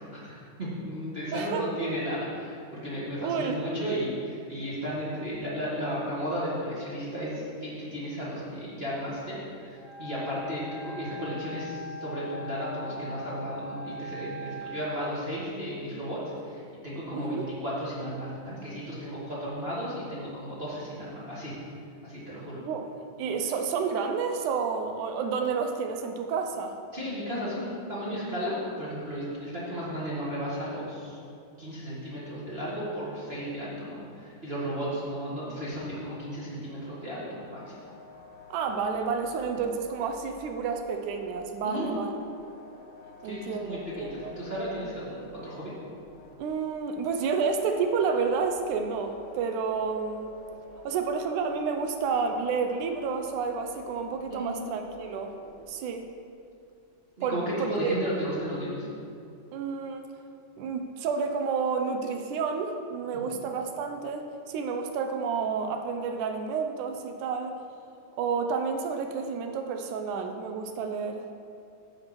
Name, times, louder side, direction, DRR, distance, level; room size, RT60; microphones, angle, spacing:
voice 1, 0.0-9.4 9.6-21.5 22.0-22.6 26.9-31.2 31.6-37.8 41.6-41.9 43.2-45.7 54.3-54.6 57.2-58.9 63.1-63.2, equal, 30° right, -9 dB, 1.2 m, -34 dB
voice 2, 1.3-1.7 3.2-3.7 17.1-17.5 22.6-22.9 23.2-26.8 38.5-42.1 43.2-44.3 46.4-50.3 50.9-55.4 55.7-56.1 57.2-57.9 59.5-60.1 60.6-67.6 68.2-71.2, right 5 dB, 75° right, 6 dB, 1.9 m, -30 dB
Wind instrument woodwind instrument, 9.7-15.0, left 1 dB, 60° right, 1.1 m, -40 dB
sound 1, 37.3-55.6, left 1 dB, 70° left, 1.3 m, -49 dB
9.2 x 5.2 x 7.6 m, 2.5 s
omnidirectional pair, 3.9 m